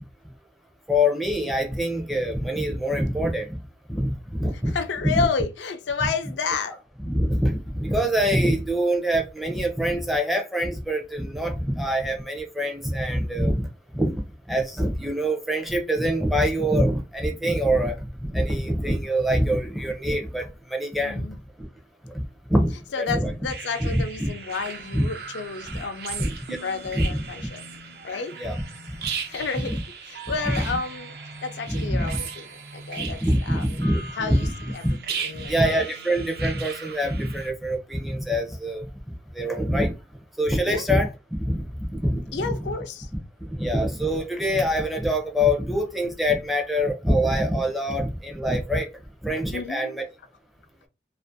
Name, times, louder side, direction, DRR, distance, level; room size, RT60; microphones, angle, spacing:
voice 1, 0.9-3.6 3.9-4.1 4.4-4.7 5.0-5.3 7.0-13.7 13.9-21.2 22.1-22.2 22.5-23.3 23.8-24.3 24.9-25.1 25.7-25.8 26.2-26.3 26.9-27.2 28.4-28.6 30.5-30.6 31.7-32.1 33.0-34.5 34.8-35.0 35.3-38.8 39.3-39.9 40.4-41.6 41.9-42.6 43.4-48.9 49.2-50.1, equal, ahead, 0.4 m, -25 dB
voice 2, 4.7-6.8 21.0-21.4 22.9-26.3 26.6-27.6 28.0-28.4 29.3-29.8 30.1-31.2 31.4-32.5 32.7-33.9 34.2-34.5 34.7-34.9 35.2-35.7 40.7-40.8 42.3-43.1 49.5-50.0, left 5 dB, 85° left, 0.4 m, -30 dB
sound 1, 23.5-37.5, right 6 dB, 60° right, 0.4 m, -37 dB
2.4 x 2.4 x 2.5 m
head